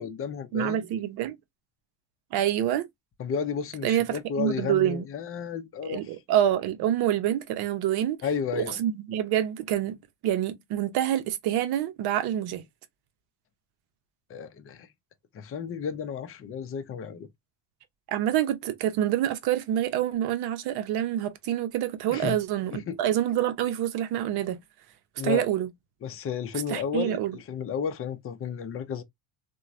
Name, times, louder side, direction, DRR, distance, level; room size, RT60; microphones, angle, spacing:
voice 1, 0.0-0.8 3.2-6.1 8.2-8.8 14.3-14.9 15.3-17.3 22.1-22.4 22.7-23.0 25.2-25.5 26.0-29.0, left 7 dB, 30° left, 0.6 m, -32 dB
voice 2, 0.5-1.3 2.3-2.9 3.8-5.0 5.8-8.2 8.5-12.6 18.1-24.6 25.2-25.7 26.7-27.3, right 11 dB, 60° right, 0.8 m, -27 dB
2.9 x 2.3 x 2.4 m
supercardioid pair, 95°, 43 cm